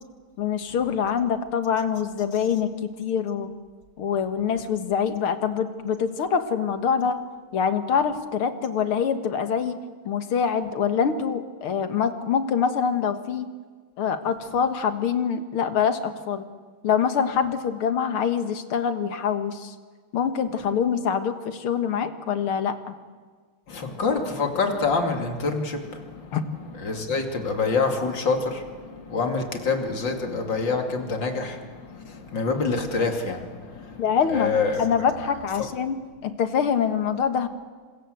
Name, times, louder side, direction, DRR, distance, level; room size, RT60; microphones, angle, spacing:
voice 1, 0.4-2.7 3.0-3.5 4.0-7.2 7.5-9.8 10.1-13.5 14.0-16.5 16.8-19.7 20.1-22.9 26.3-26.4 34.0-34.5 34.8-37.5, left 7 dB, 80° left, 9 dB, 2.4 m, -25 dB
voice 2, 23.7-26.4 26.8-34.0 34.3-34.8 35.6-35.7, left 4 dB, 60° left, 4 dB, 3.3 m, -26 dB
28.5 x 25.5 x 7.9 m, 1.5 s
omnidirectional pair, 2.3 m